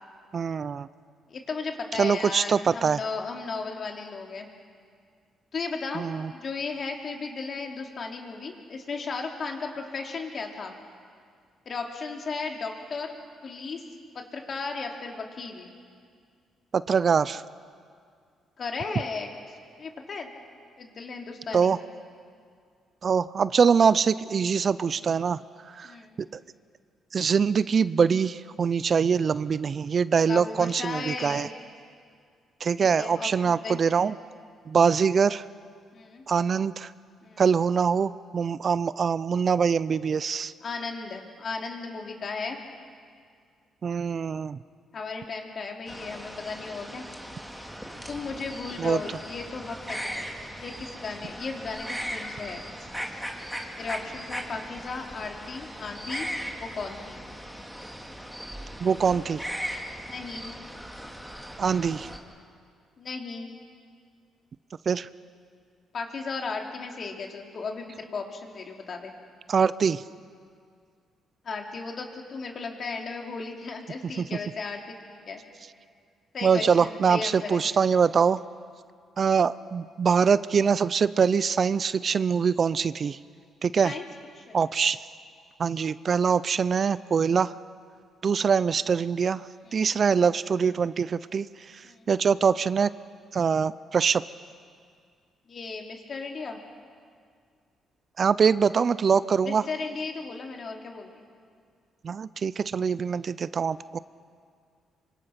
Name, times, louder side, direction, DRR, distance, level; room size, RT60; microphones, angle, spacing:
voice 1, 0.3-0.9 2.0-3.0 5.9-6.3 16.7-17.4 21.5-21.8 23.0-25.4 25.7-25.9 26.3-26.4 27.1-31.5 32.6-34.1 34.7-35.4 36.3-36.9 37.4-40.5 43.8-44.6 48.8-49.0 58.8-59.5 61.6-62.1 64.9-65.1 69.5-70.0 76.4-78.4 79.2-83.2 83.6-83.9 84.5-85.0 85.6-87.5 88.2-91.8 92.1-92.9 93.3-94.2 98.2-99.6 102.0-104.0, right 6 dB, 45° right, 17 dB, 0.5 m, -23 dB
voice 2, 1.3-4.5 5.5-10.7 11.6-13.1 13.4-13.8 14.1-15.7 18.6-20.3 20.8-21.7 25.8-26.1 30.3-31.5 32.8-33.8 35.9-36.2 37.2-37.4 40.6-42.6 44.9-47.1 48.1-52.6 53.8-56.3 56.6-57.2 60.1-60.5 63.0-63.5 65.9-69.1 71.4-75.4 76.3-77.6 83.8-84.1 84.4-84.5 89.6-89.8 91.8-92.1 95.5-96.6 99.4-101.3, left 4 dB, 50° left, 2 dB, 3.1 m, -35 dB
sound 1, 45.9-62.2, equal, ahead, 2.6 m, -38 dB
26.0 x 24.5 x 5.9 m, 2.2 s
cardioid pair, 90°, 0 cm